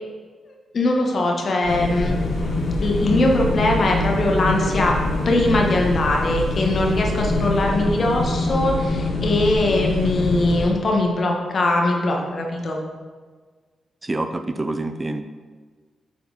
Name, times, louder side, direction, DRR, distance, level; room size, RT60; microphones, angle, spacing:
voice 1, 0.7-2.2 2.8-5.0 5.2-12.8, left 2 dB, 55° left, 0 dB, 1.4 m, -21 dB
sound 1, 1.6-7.6, left 1 dB, 25° left, 1.5 m, -35 dB
sound 2, 1.7-10.7, left 2 dB, 70° left, 1.2 m, -24 dB
voice 2, 14.0-15.2, right 2 dB, 25° right, 8 dB, 0.5 m, -26 dB
8.5 x 4.3 x 4.1 m, 1.5 s
cardioid pair, 60°, 0 cm